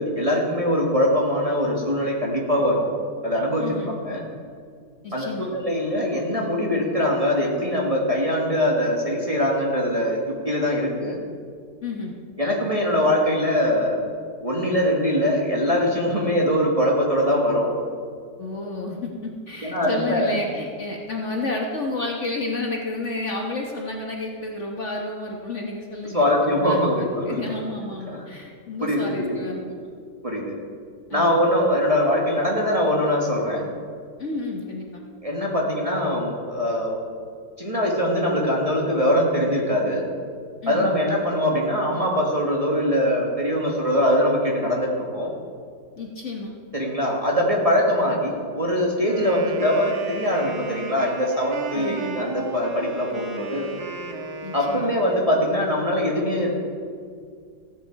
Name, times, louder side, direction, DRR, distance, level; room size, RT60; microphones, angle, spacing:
voice 1, 0.0-2.9 3.2-3.6 4.0-4.2 5.1-11.2 12.4-14.0 14.4-17.7 19.6-20.4 26.1-27.4 28.1-28.2 28.8-29.6 30.2-30.6 31.1-33.7 35.2-37.0 37.6-40.0 40.7-45.3 46.7-53.7 54.5-56.5, equal, 20° right, -3 dB, 1.6 m, -22 dB
voice 2, 3.6-3.9 5.0-5.5 11.8-12.1 18.4-29.6 31.1-31.4 34.2-35.0 40.6-41.0 46.0-46.5 51.8-52.2 54.4-54.9, left 2 dB, 45° left, 0 dB, 1.4 m, -31 dB
Wind instrument woodwind instrument, 49.0-55.3, right 3 dB, 65° right, 1.7 m, -35 dB
15.5 x 9.5 x 4.7 m, 2.2 s
omnidirectional pair, 1.9 m